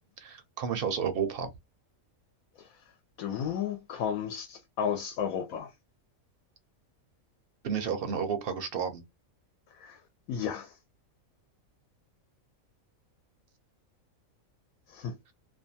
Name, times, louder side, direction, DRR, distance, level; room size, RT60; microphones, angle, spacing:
voice 1, 0.2-1.5 7.6-9.0, right 7 dB, 55° right, 0.7 m, -31 dB
voice 2, 3.2-5.7 9.8-10.0 10.3-10.7 14.9-15.2, left 8 dB, 80° left, 1.0 m, -33 dB
2.6 x 2.2 x 2.6 m
omnidirectional pair, 1.4 m